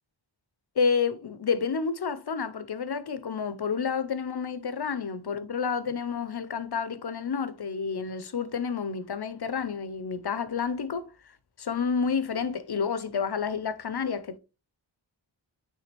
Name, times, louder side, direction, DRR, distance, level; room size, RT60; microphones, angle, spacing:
voice 1, 0.8-11.1 11.6-14.4, left 6 dB, 60° left, 0.8 m, -29 dB
9.1 x 3.5 x 3.4 m
wide cardioid pair, 95°, 45 cm